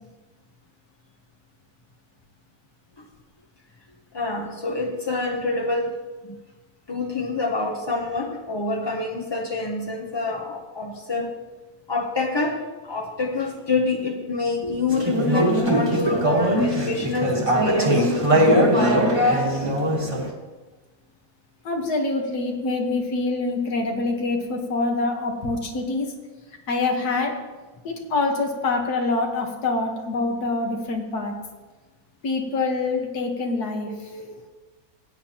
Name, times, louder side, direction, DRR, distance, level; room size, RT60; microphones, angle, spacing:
voice 1, 4.1-6.0 6.2-6.4 6.9-11.3 11.9-18.1 33.8-34.5, left 3 dB, 35° left, 0 dB, 0.4 m, -27 dB
Conversation / Chatter, 14.9-20.3, equal, 25° right, 1.2 m, -20 dB
voice 2, 21.7-26.1 26.7-27.4 27.8-31.3 32.2-33.9, left 3 dB, 85° left, 2 dB, 1.8 m, -25 dB
15.0 x 8.7 x 2.9 m, 1.2 s
omnidirectional pair, 1.6 m